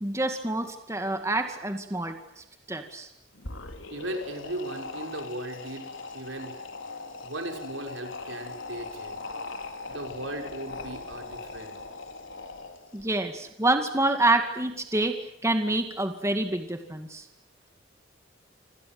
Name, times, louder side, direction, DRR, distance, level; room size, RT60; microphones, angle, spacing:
voice 1, 0.0-3.1 12.9-17.3, right 2 dB, 15° right, 6 dB, 2.1 m, -27 dB
sound 1, 3.3-13.0, left 3 dB, 80° left, 4.2 m, -40 dB
voice 2, 3.9-6.6 7.2-9.2 9.9-11.8, right 1 dB, 80° right, 3 dB, 6.3 m, -37 dB
27.5 x 27.0 x 7.9 m, 0.79 s
head